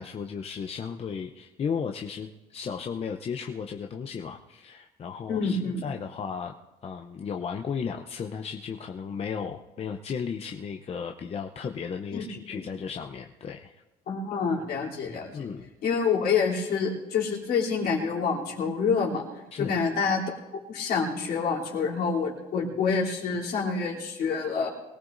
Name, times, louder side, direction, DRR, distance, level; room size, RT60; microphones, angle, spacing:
voice 1, 0.0-6.5 6.8-13.7 15.3-15.7 19.5-19.8, left 6 dB, 35° left, 3 dB, 0.7 m, -35 dB
voice 2, 5.3-5.8 12.1-12.6 14.1-15.4 15.8-19.2 19.6-20.4 20.7-24.7, left 5 dB, 65° left, -4 dB, 3.3 m, -27 dB
23.0 x 17.5 x 2.6 m, 1.1 s
cardioid pair, 110°, 17 cm